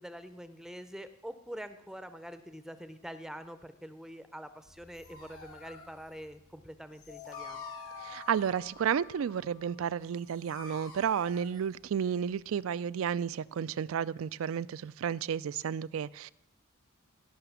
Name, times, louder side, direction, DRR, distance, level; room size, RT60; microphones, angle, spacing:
voice 1, 0.0-7.6, equal, ahead, 0.6 m, -45 dB
Dog, 4.6-12.5, left 1 dB, 80° left, 4.7 m, -52 dB
sound 1, 7.1-9.8, left 7 dB, 40° left, 0.7 m, -46 dB
voice 2, 8.0-16.3, right 8 dB, 70° right, 0.3 m, -32 dB
16.5 x 6.0 x 7.0 m
head